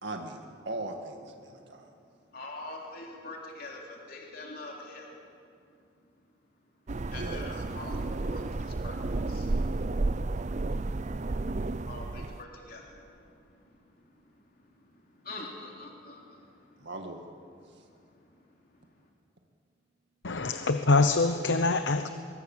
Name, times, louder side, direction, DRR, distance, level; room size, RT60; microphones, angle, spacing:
voice 1, 0.0-1.9 7.1-7.4 16.8-17.3, right 2 dB, 80° right, 3 dB, 2.0 m, -39 dB
voice 2, 2.3-5.3 7.0-16.9 17.6-18.9, left 2 dB, 55° left, -1 dB, 3.3 m, -46 dB
sound 1, 6.9-12.4, right 2 dB, 40° right, 0.5 m, -32 dB
voice 3, 20.2-22.1, left 3 dB, 85° left, 9 dB, 0.9 m, -24 dB
24.5 x 23.5 x 7.3 m, 2.4 s
head